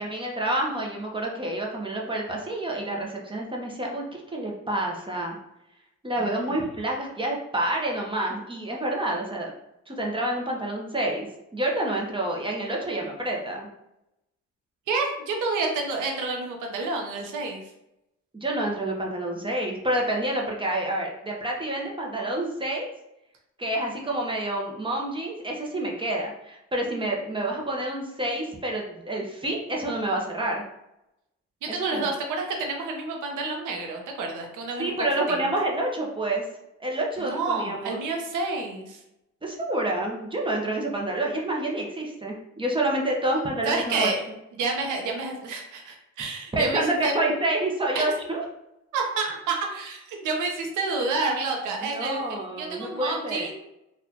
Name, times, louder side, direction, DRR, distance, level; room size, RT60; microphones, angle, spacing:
voice 1, 0.0-5.4 6.0-9.5 9.9-11.3 11.5-13.7 18.3-22.9 23.6-30.6 31.7-32.1 34.8-36.4 36.8-38.0 39.4-44.1 46.5-48.4 51.8-53.5, right 1 dB, 15° right, -1 dB, 0.9 m, -28 dB
voice 2, 6.2-6.5 14.9-17.7 31.6-35.4 37.2-39.0 43.7-44.2 44.5-47.1 47.9-48.1 48.9-53.5, right 3 dB, 85° right, 2 dB, 0.9 m, -29 dB
4.1 x 2.5 x 2.8 m, 0.86 s
cardioid pair, 90°, 30 cm